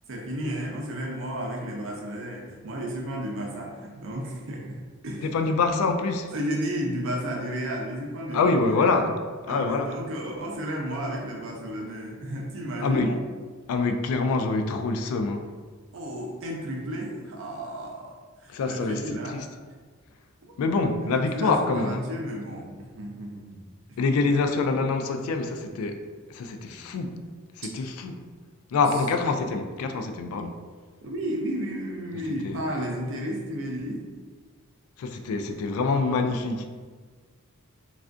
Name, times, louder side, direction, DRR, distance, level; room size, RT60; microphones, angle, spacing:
voice 1, 0.1-5.3 6.3-9.1 9.5-13.2 15.9-19.4 21.0-23.6 31.0-34.1, equal, 65° right, 0.5 m, -33 dB
voice 2, 5.2-6.3 8.3-9.2 9.5-9.9 12.8-13.1 13.7-15.5 18.5-19.5 20.6-22.0 24.0-26.0 26.3-27.2 27.6-28.2 28.7-30.6 32.4-32.6 35.0-36.9, left 3 dB, 80° left, 0.3 m, -25 dB
3.3 x 2.4 x 2.5 m
head